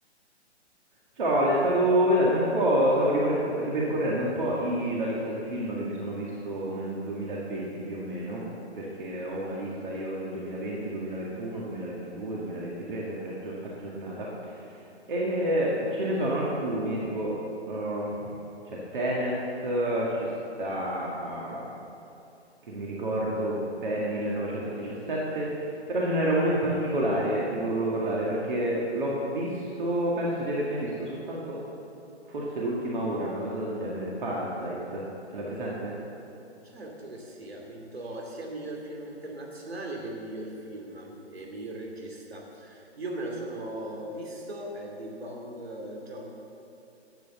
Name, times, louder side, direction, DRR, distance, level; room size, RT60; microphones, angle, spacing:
voice 1, 1.2-8.4 8.7-14.8 15.1-17.4 17.7-18.3 18.7-19.3 19.6-20.3 20.6-21.7 22.6-31.6 32.3-35.0 35.3-35.9, right 1 dB, 45° right, -5 dB, 2.1 m, -29 dB
voice 2, 36.6-46.3, right 1 dB, 65° right, 0 dB, 2.7 m, -38 dB
12.0 x 8.5 x 6.9 m, 2.8 s
figure-of-eight pair, 130°, 34 cm